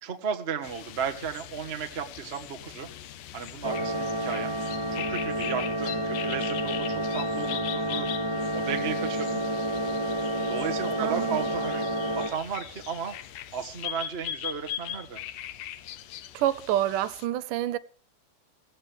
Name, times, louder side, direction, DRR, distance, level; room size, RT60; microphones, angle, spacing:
voice 1, 0.0-2.9 3.3-4.5 4.9-8.1 8.5-9.4 10.4-11.8 12.1-13.1 13.5-15.2, right 7 dB, 40° right, 0.8 m, -34 dB
sound 1, 0.6-17.3, left 11 dB, 90° left, 2.5 m, -40 dB
sound 2, 3.6-12.3, right 1 dB, 10° right, 2.3 m, -29 dB
voice 2, 11.0-11.5 16.3-17.8, right 12 dB, 80° right, 2.3 m, -28 dB
16.5 x 15.5 x 3.5 m
omnidirectional pair, 3.7 m